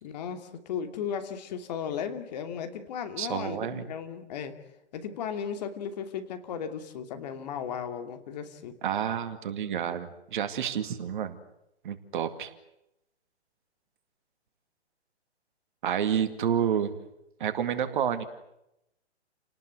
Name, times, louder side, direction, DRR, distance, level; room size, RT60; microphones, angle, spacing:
voice 1, 0.0-4.6 4.9-8.7, left 7 dB, 35° left, 7 dB, 2.8 m, -35 dB
voice 2, 3.2-3.8 8.8-11.4 11.8-12.5 15.8-17.0 17.4-18.2, right 9 dB, 45° right, 9 dB, 2.4 m, -29 dB
29.5 x 19.0 x 9.7 m, 0.86 s
hypercardioid pair, 145°, 34 cm